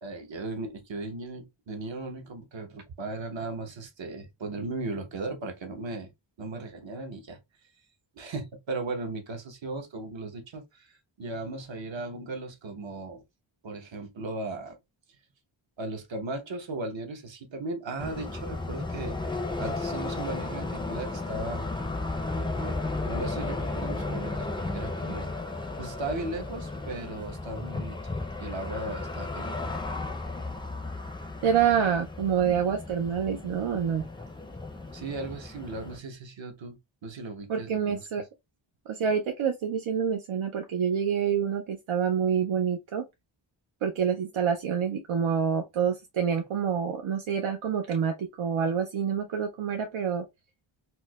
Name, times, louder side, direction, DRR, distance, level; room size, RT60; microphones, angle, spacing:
voice 1, 0.0-6.1 6.4-7.4 8.2-13.2 13.6-14.8 15.8-19.2 19.6-21.7 22.3-25.3 25.8-28.0 28.4-29.5 34.9-38.1, right 2 dB, 65° right, 1.0 m, -37 dB
sound 1, 18.0-36.0, left 2 dB, 10° left, 0.4 m, -34 dB
voice 2, 31.4-34.1 37.5-38.2 38.9-43.0 43.8-50.2, right 7 dB, 85° right, 0.6 m, -27 dB
4.5 x 2.1 x 2.2 m
wide cardioid pair, 85°, 48 cm